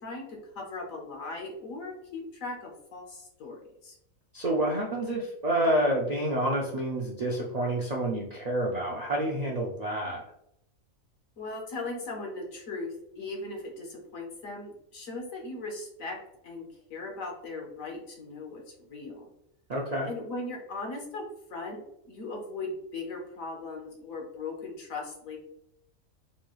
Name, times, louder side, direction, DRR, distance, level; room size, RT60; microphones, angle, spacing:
voice 1, 0.0-4.0 11.4-16.2 16.4-16.6 16.9-19.3 20.1-21.8 22.1-25.4, left 3 dB, 75° left, 0 dB, 1.2 m, -38 dB
voice 2, 4.3-10.2 19.7-20.1, right 1 dB, 60° right, -2 dB, 0.4 m, -28 dB
4.2 x 2.3 x 3.0 m, 0.77 s
omnidirectional pair, 1.5 m